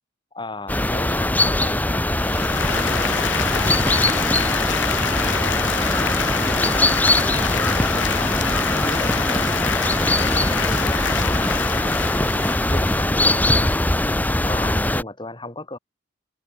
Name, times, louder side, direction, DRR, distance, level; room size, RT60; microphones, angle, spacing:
voice 1, 0.3-4.5 5.4-12.4 12.7-15.8, left 1 dB, 25° left, 6.9 m, -35 dB
sound 1, 0.7-15.0, left 1 dB, 10° left, 0.7 m, -21 dB
Applause, 2.1-13.8, left 7 dB, 70° left, 4.7 m, -27 dB
head